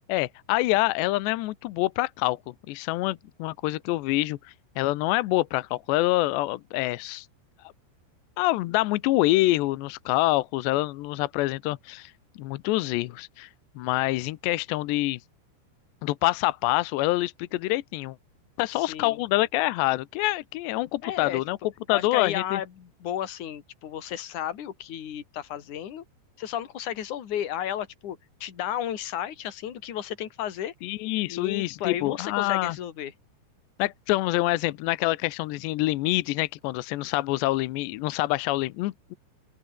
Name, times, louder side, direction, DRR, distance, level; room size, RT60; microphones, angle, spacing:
voice 1, 0.1-2.4 2.7-7.3 8.4-12.1 12.4-13.5 13.8-15.2 16.0-18.2 18.6-21.6 21.9-22.6 30.8-32.8 33.8-39.2, left 18 dB, 80° left, 2.6 m, -26 dB
voice 2, 18.7-19.2 21.0-21.4 21.9-26.0 26.4-30.7 31.3-33.1, left 10 dB, 45° left, 3.1 m, -33 dB
open air
omnidirectional pair, 6.0 m